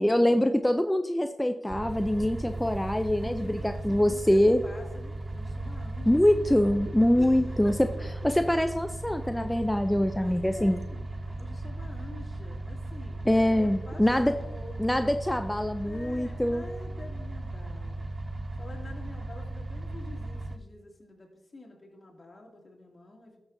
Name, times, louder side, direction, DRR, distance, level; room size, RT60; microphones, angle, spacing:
voice 1, 0.0-4.6 6.1-7.9 8.2-10.8 13.3-14.3 14.8-16.6, left 1 dB, 10° left, 7 dB, 0.5 m, -24 dB
sound 1, 1.7-20.6, right 2 dB, 35° right, 0.6 m, -37 dB
voice 2, 2.1-2.7 3.2-6.2 7.2-7.4 7.6-7.8 10.2-14.7 15.8-18.0 18.6-23.4, left 2 dB, 45° left, -1 dB, 2.5 m, -48 dB
13.0 x 6.7 x 2.7 m, 1.0 s
cardioid pair, 50°, 0 cm